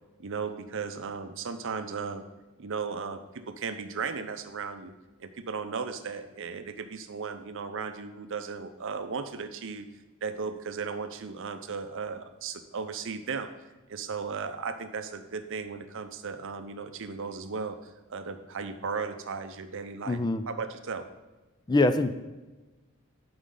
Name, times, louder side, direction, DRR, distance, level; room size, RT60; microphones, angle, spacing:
voice 1, 0.2-2.2 2.6-4.9 5.2-9.9 10.2-13.5 13.9-20.2 20.5-21.0, right 5 dB, 60° right, 9 dB, 0.7 m, -36 dB
voice 2, 20.1-20.4 21.7-22.1, left 2 dB, 20° left, 10 dB, 0.4 m, -24 dB
12.0 x 5.3 x 3.9 m, 1.2 s
head